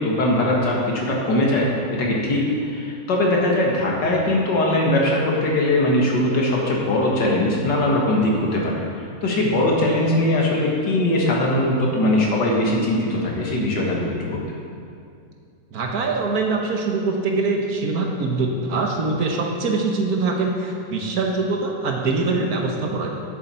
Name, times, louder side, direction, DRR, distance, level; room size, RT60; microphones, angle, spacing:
voice 1, 0.0-14.4, left 1 dB, 75° left, -2 dB, 2.2 m, -21 dB
voice 2, 15.7-23.1, right 3 dB, 60° right, 1 dB, 1.4 m, -23 dB
10.5 x 8.0 x 4.3 m, 2.4 s
omnidirectional pair, 1.9 m